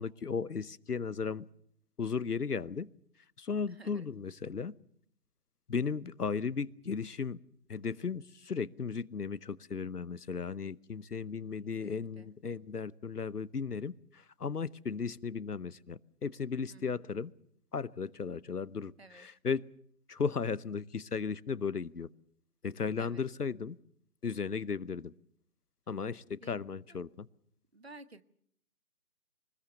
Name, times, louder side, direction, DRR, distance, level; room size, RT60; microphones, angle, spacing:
voice 1, 0.0-1.5 2.0-2.9 3.4-4.7 5.7-7.4 7.7-17.3 17.7-19.7 20.1-22.1 22.6-23.8 24.2-25.1 25.9-27.3, left 5 dB, 75° left, 19 dB, 0.9 m, -35 dB
voice 2, 3.7-4.1 11.6-12.3 16.7-17.0 19.0-19.3 23.0-23.3 26.4-27.0 27.7-28.2, right 2 dB, 40° right, 14 dB, 1.0 m, -54 dB
24.5 x 20.0 x 6.8 m, 0.68 s
figure-of-eight pair, 160°, 47 cm